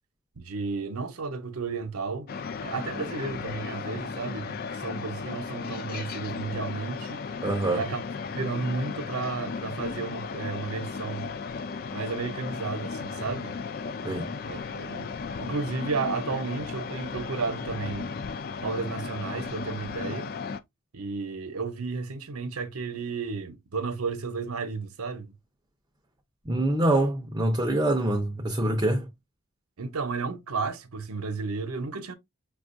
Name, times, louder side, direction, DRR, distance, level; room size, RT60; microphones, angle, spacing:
voice 1, 0.4-2.3 2.6-7.2 7.7-8.0 8.3-11.3 11.9-13.6 14.4-15.1 15.4-18.1 18.6-20.3 20.9-25.3 29.8-32.1, right 4 dB, 85° right, 0.7 m, -33 dB
sound 1, 2.3-20.6, left 5 dB, 45° left, 0.3 m, -35 dB
voice 2, 7.4-7.8 14.0-14.3 26.5-29.1, right 1 dB, 20° right, 0.5 m, -25 dB
5.2 x 2.3 x 2.5 m
head